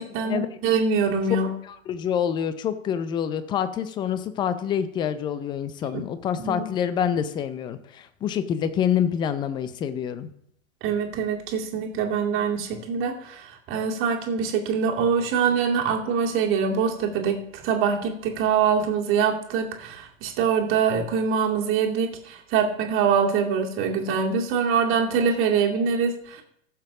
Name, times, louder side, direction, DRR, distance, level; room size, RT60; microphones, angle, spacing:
voice 1, 0.0-1.5 5.9-6.0 6.4-6.6 10.8-26.4, right 6 dB, 30° right, 1 dB, 2.2 m, -24 dB
voice 2, 1.9-10.3, left 8 dB, 10° left, 12 dB, 0.5 m, -26 dB
14.5 x 7.0 x 4.9 m, 0.71 s
hypercardioid pair, 115°, 41 cm